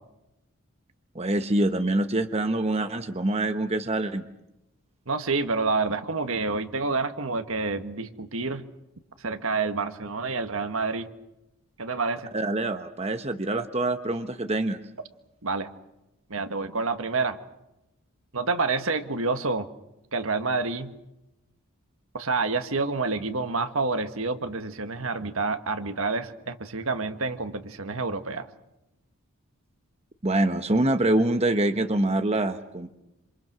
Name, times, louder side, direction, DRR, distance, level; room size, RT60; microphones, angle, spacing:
voice 1, 1.1-4.3 12.3-14.8 30.2-32.9, right 1 dB, 30° right, 7 dB, 1.1 m, -25 dB
voice 2, 5.1-8.7 9.2-11.1 11.8-12.3 15.4-15.7 16.3-17.4 18.3-19.7 20.1-20.9 22.1-28.5, right 3 dB, 70° right, 8 dB, 1.7 m, -28 dB
28.0 x 27.0 x 6.2 m, 0.90 s
head